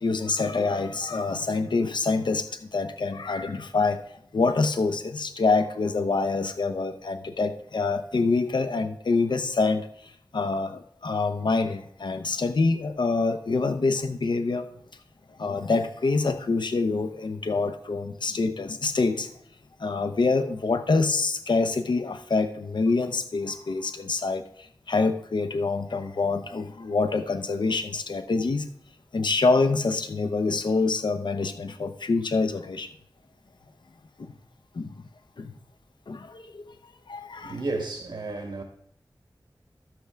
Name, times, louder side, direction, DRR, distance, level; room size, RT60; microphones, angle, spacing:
voice 1, 0.0-4.0 4.3-14.7 15.4-19.3 19.8-28.7 29.1-32.9 34.2-34.3 34.7-34.9 35.4-35.5 36.1-36.7 37.1-37.6, left 3 dB, 80° left, 0.7 m, -26 dB
voice 2, 37.4-38.6, right 3 dB, 80° right, 1.1 m, -32 dB
12.5 x 7.8 x 3.4 m
wide cardioid pair, 85°, 8 cm